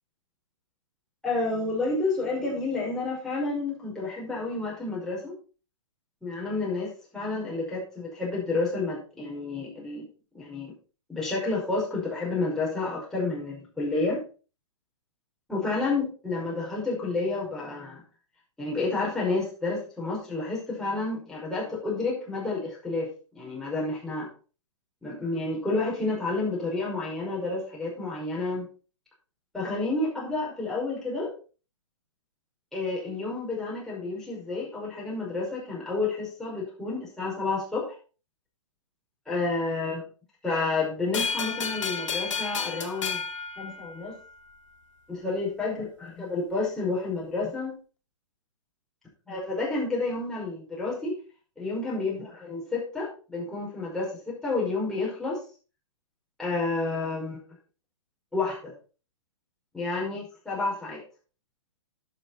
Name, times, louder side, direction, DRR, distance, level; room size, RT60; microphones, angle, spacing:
voice 1, 1.2-5.3 6.2-10.0 10.3-10.7 11.1-14.2 15.5-18.0 18.6-23.1 23.3-24.3 25.0-28.7 29.5-31.3 32.7-37.9 39.3-40.0 40.4-43.2 43.6-44.1 45.1-47.7 49.3-51.2 51.6-55.4 56.4-57.4 58.3-58.7 59.7-61.0, left 3 dB, 5° left, -5 dB, 5.3 m, -30 dB
sound 1, 41.1-44.4, left 5 dB, 65° left, 1.8 m, -32 dB
11.0 x 6.2 x 4.2 m, 0.36 s
hypercardioid pair, 130°, 17 cm